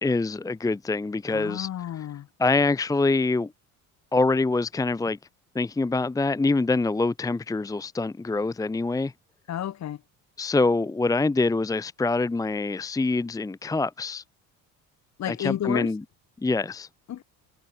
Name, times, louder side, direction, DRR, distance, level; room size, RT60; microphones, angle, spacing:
voice 1, 0.0-1.7 2.4-3.5 4.1-5.2 5.5-9.1 10.4-14.2 15.3-16.0 16.4-16.9, left 3 dB, 10° left, 0.8 m, -25 dB
voice 2, 1.3-2.3 9.5-10.0 15.2-15.9 17.1-17.2, left 11 dB, 50° left, 4.5 m, -31 dB
cardioid pair, 120°, 34 cm